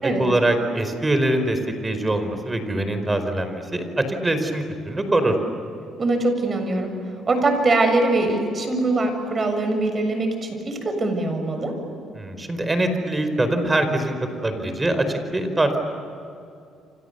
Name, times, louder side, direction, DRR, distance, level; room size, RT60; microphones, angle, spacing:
voice 1, 0.0-5.3 12.1-14.2 14.4-15.8, right 1 dB, 20° right, 7 dB, 4.9 m, -23 dB
voice 2, 6.0-6.9 7.3-11.7, right 2 dB, 35° right, 6 dB, 7.0 m, -22 dB
30.0 x 26.0 x 7.0 m, 2.6 s
cardioid pair, 90°, 0 cm